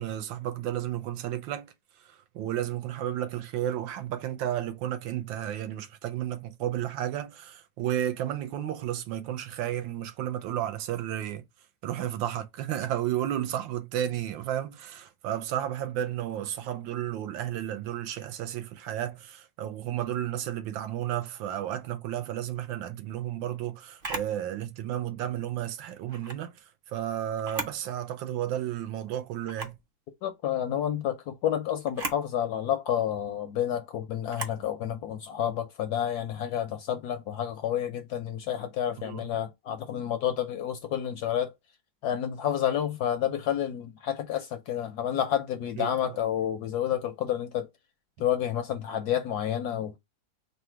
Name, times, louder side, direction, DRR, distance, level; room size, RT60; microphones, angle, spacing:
voice 1, 0.0-1.7 2.0-11.4 11.8-29.8 39.0-39.2 45.8-46.2, right 11 dB, 85° right, 1.4 m, -32 dB
Camera, 24.0-24.3 26.1-26.4 27.3-27.8 28.3-28.4 29.4-29.8 31.8-32.2 34.3-34.6, right 3 dB, 50° right, 0.6 m, -36 dB
voice 2, 30.2-41.5 42.0-47.7 48.2-50.0, left 10 dB, 70° left, 0.9 m, -30 dB
4.0 x 2.2 x 4.4 m
omnidirectional pair, 2.1 m